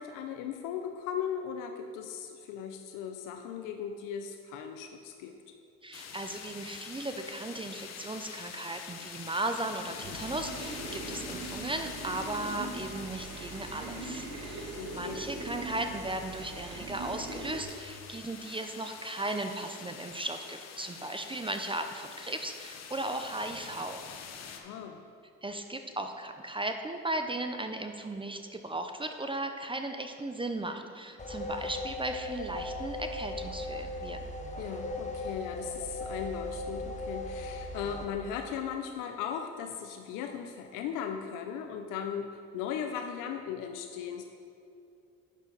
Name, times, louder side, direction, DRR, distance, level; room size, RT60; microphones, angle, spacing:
voice 1, 0.0-5.3 14.8-15.2 24.5-25.0 34.6-44.2, left 8 dB, 85° left, 5 dB, 0.6 m, -37 dB
voice 2, 5.8-24.0 25.4-34.2, right 2 dB, 15° right, 6 dB, 0.6 m, -36 dB
sound 1, 5.9-24.6, left 6 dB, 55° left, 1.0 m, -45 dB
sound 2, 10.0-17.6, right 3 dB, 55° right, 1.3 m, -41 dB
sound 3, 31.2-38.1, left 2 dB, 25° left, 1.0 m, -38 dB
9.2 x 7.0 x 4.0 m, 2.6 s
supercardioid pair, 70°, 31 cm